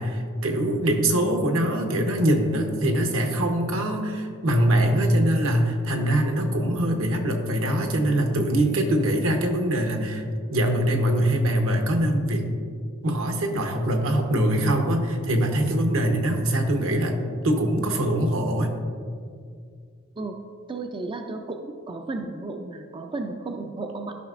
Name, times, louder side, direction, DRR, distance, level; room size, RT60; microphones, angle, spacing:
voice 1, 0.0-10.2 10.5-12.4 13.0-17.2 17.4-18.7, right 1 dB, 70° right, 3 dB, 0.9 m, -23 dB
voice 2, 20.7-24.1, right 3 dB, 25° right, 4 dB, 0.3 m, -33 dB
13.0 x 5.6 x 2.4 m, 2.2 s
head